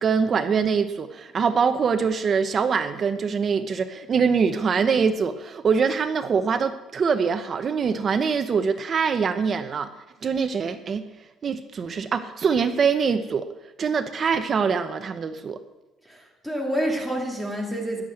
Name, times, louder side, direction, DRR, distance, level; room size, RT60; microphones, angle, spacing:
voice 1, 0.0-9.9 10.2-11.0 11.4-13.5 13.8-15.6, right 6 dB, 30° right, 9 dB, 0.8 m, -23 dB
voice 2, 16.1-18.0, equal, 5° left, 0 dB, 2.3 m, -28 dB
15.5 x 11.5 x 7.8 m, 1.0 s
cardioid pair, 165°, 0 cm